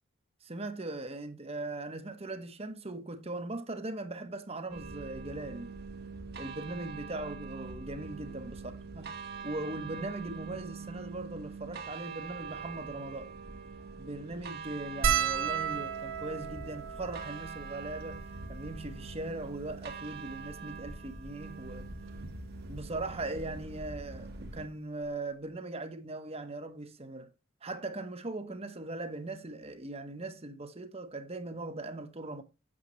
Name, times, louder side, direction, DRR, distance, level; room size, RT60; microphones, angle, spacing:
voice 1, 0.4-5.7 6.4-13.3 14.0-21.9 22.7-27.3 27.6-32.4, right 2 dB, 30° right, 1.0 m, -40 dB
sound 1, 4.7-24.7, right 4 dB, 50° right, 1.3 m, -44 dB
sound 2, 15.0-19.6 20.4-20.5 20.7-20.9 22.1-22.4 23.8-23.9 24.1-24.3, right 6 dB, 80° right, 1.7 m, -34 dB
8.7 x 6.8 x 3.1 m
head